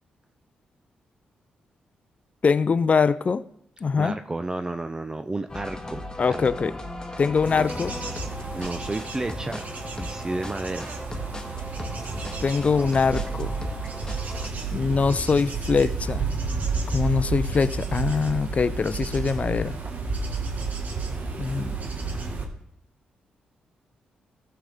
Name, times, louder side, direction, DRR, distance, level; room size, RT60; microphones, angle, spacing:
voice 1, 2.4-3.4 3.8-4.2 6.2-6.7 7.2-7.9 12.4-13.6 14.7-16.3 16.9-19.8 21.4-21.8, left 5 dB, 40° left, 15 dB, 0.5 m, -23 dB
voice 2, 3.9-6.4 7.6-7.7 8.5-9.6 10.0-10.9, right 2 dB, 20° right, 8 dB, 0.5 m, -32 dB
sound 1, 5.5-14.5, left 1 dB, 20° left, 1.6 m, -37 dB
Bird / Insect / Wind, 7.4-22.4, right 4 dB, 55° right, 1.7 m, -31 dB
14.5 x 6.8 x 3.6 m, 0.72 s
supercardioid pair, 50°, 3 cm